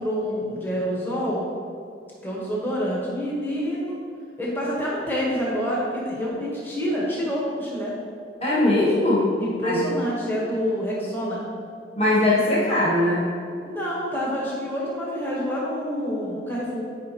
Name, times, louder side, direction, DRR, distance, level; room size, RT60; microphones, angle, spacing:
voice 1, 0.0-1.5 2.2-4.0 4.4-7.9 9.4-11.4 13.6-16.8, equal, 10° left, -5 dB, 1.0 m, -27 dB
voice 2, 8.4-9.3 9.6-9.8 12.0-13.2, left 1 dB, 30° left, -8 dB, 1.5 m, -20 dB
10.0 x 5.0 x 2.8 m, 2.4 s
head